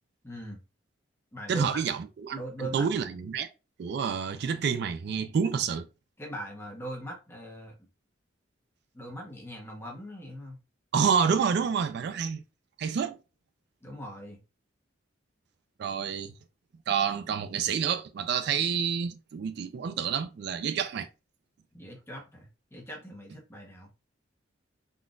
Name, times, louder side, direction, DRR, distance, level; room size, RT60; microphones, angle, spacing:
voice 1, 0.2-0.6 1.3-1.8 2.3-2.9 6.2-7.7 8.9-10.6 13.8-14.4 21.7-23.9, right 1 dB, 15° left, 0.8 m, -40 dB
voice 2, 1.5-3.5 3.8-5.9 10.9-12.4 12.8-13.2 15.8-16.3 16.9-21.1, right 6 dB, 60° right, 0.3 m, -28 dB
3.7 x 2.4 x 2.4 m
head